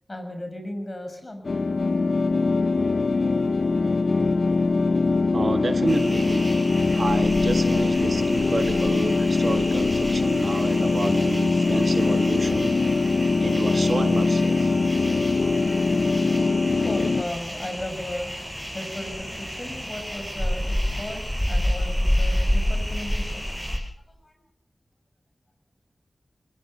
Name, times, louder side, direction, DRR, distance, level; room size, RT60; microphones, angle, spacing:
voice 1, 0.1-1.4 16.8-18.3 18.7-23.5 24.2-24.3, left 1 dB, 40° left, 6 dB, 6.6 m, -35 dB
sound 1, 1.4-17.2, left 3 dB, 70° left, 0.7 m, -22 dB
voice 2, 5.3-6.5 6.9-12.8 13.4-14.7, right 3 dB, 60° right, 8 dB, 1.6 m, -29 dB
sound 2, 5.9-23.8, equal, 5° left, 6.1 m, -30 dB
20.5 x 19.5 x 6.8 m, 0.73 s
cardioid pair, 45°, 0 cm